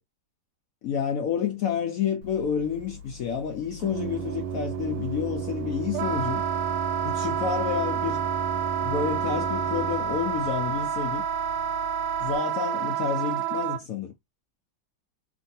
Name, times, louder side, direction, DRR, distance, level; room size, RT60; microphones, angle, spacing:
voice 1, 0.8-6.4 7.0-8.2 8.8-11.2 12.2-14.1, left 7 dB, 80° left, 0.8 m, -29 dB
Organ, 2.2-12.4, right 7 dB, 90° right, 1.3 m, -35 dB
Wind instrument woodwind instrument, 5.9-13.8, right 8 dB, 70° right, 1.1 m, -29 dB
2.8 x 2.6 x 2.6 m
omnidirectional pair, 2.0 m